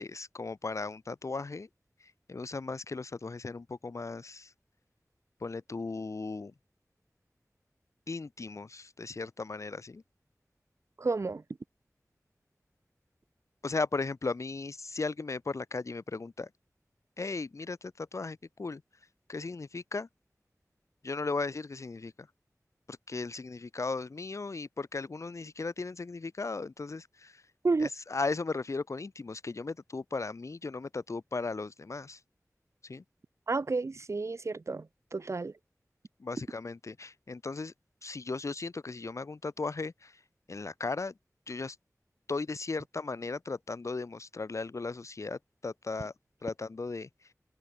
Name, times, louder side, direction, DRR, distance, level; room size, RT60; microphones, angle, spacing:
voice 1, 0.0-1.7 2.3-4.5 5.4-6.5 8.1-10.0 13.6-16.5 17.2-18.8 19.3-20.1 21.0-22.3 22.9-27.4 27.8-32.2 32.8-33.0 36.2-37.7 38.0-40.2 40.5-41.1 41.5-41.8 42.3-46.1 46.4-47.1, left 3 dB, 60° left, 0.5 m, -36 dB
voice 2, 11.0-11.4 27.6-27.9 33.5-34.9 35.1-35.5, right 3 dB, 55° right, 0.4 m, -30 dB
wide cardioid pair, 50°, 6 cm